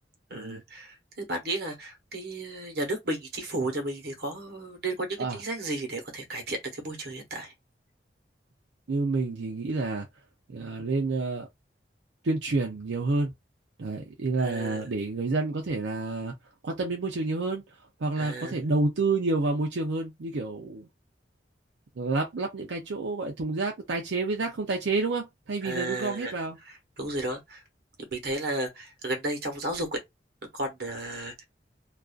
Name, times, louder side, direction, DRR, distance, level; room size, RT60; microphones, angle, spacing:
voice 1, 0.3-7.5 14.4-14.9 18.2-18.6 25.6-26.3 26.6-27.6 28.1-30.0 30.5-31.4, right 2 dB, 60° right, 1.0 m, -33 dB
voice 2, 8.9-10.1 10.5-11.5 12.2-13.3 13.8-16.3 16.6-17.6 18.0-20.9 22.0-26.6, right 3 dB, 85° right, 0.5 m, -29 dB
2.4 x 2.3 x 2.3 m
head